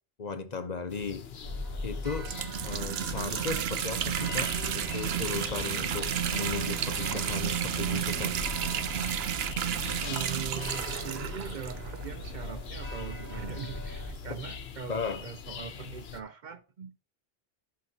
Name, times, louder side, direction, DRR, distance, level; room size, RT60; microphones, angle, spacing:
voice 1, 0.2-1.2 1.8-2.3 2.6-8.4 14.9-15.2, left 5 dB, 45° left, 0.8 m, -36 dB
sound 1, 0.9-16.2, left 6 dB, 80° left, 1.1 m, -43 dB
sound 2, 1.4-14.1, left 1 dB, 25° right, 4.1 m, -40 dB
sound 3, 2.2-12.3 12.9-13.0 13.3-13.4 14.4-14.5, right 10 dB, 80° right, 0.8 m, -32 dB
voice 2, 10.0-17.0, right 6 dB, 60° right, 0.6 m, -41 dB
14.5 x 5.7 x 2.8 m
omnidirectional pair, 1.0 m